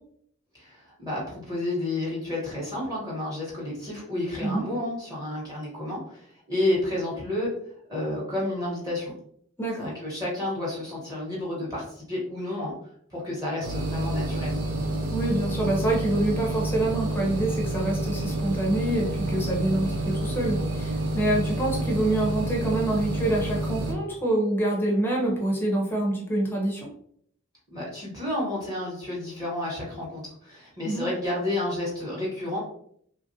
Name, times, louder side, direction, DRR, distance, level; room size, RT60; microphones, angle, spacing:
voice 1, 0.5-7.5 7.9-9.1 9.8-12.7 13.1-14.5 27.7-32.6, left 1 dB, 15° right, -6 dB, 1.1 m, -30 dB
voice 2, 9.6-9.9 15.1-26.9 30.8-31.0, right 1 dB, 10° left, -2 dB, 0.6 m, -26 dB
sound 1, 13.6-23.9, right 1 dB, 85° right, 0.5 m, -29 dB
3.0 x 2.4 x 2.6 m, 0.64 s
head